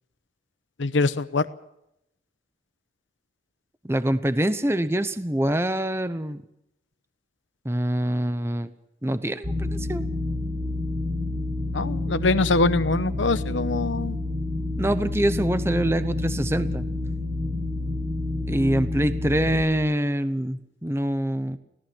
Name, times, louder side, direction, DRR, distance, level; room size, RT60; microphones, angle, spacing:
voice 1, 0.8-1.4 11.7-14.2, left 3 dB, 90° left, 13 dB, 1.0 m, -23 dB
voice 2, 3.8-6.4 7.6-8.7 9.0-10.1 14.8-16.8 18.5-21.6, right 1 dB, 15° right, 12 dB, 0.9 m, -25 dB
sound 1, 9.4-19.6, left 2 dB, 45° right, 5.5 m, -29 dB
24.5 x 17.5 x 6.2 m, 0.82 s
head